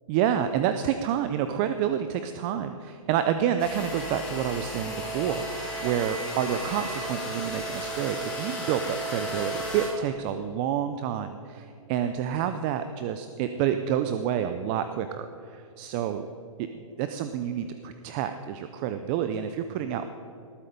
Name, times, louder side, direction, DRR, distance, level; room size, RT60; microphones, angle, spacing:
voice 1, 0.1-16.3 16.6-20.2, right 9 dB, 15° right, 9 dB, 0.3 m, -29 dB
sound 1, 3.5-7.7, left 4 dB, 45° left, 2.6 m, -50 dB
sound 2, 3.6-9.9, equal, 5° left, 3.5 m, -34 dB
19.0 x 8.6 x 5.2 m, 2.7 s
hypercardioid pair, 155°, 18 cm